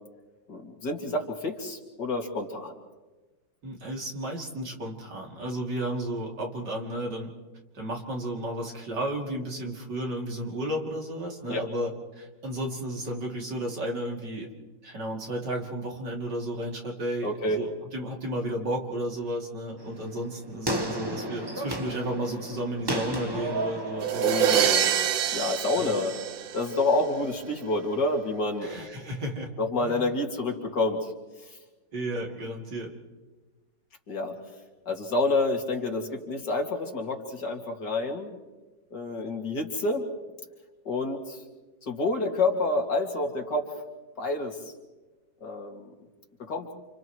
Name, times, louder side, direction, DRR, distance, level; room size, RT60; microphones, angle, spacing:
voice 1, 0.5-2.8 11.5-11.7 17.2-17.6 24.2-24.9 25.3-26.1 26.5-28.7 29.6-31.1 34.1-34.3 34.9-38.3 38.9-40.1 40.8-41.4 41.9-43.7 44.2-44.6 45.4-45.9 46.5-46.7, left 2 dB, 65° left, 1 dB, 2.9 m, -28 dB
voice 2, 3.6-7.3 7.7-11.9 12.2-14.5 14.8-24.7 25.7-25.9 28.6-29.5 29.8-30.0 31.9-32.9, right 1 dB, 65° right, -1 dB, 3.4 m, -33 dB
sound 1, 19.8-25.9, right 1 dB, 15° right, 1.0 m, -34 dB
sound 2, 24.0-27.0, right 9 dB, 80° right, 1.5 m, -25 dB
29.5 x 29.0 x 3.2 m, 1.2 s
omnidirectional pair, 2.0 m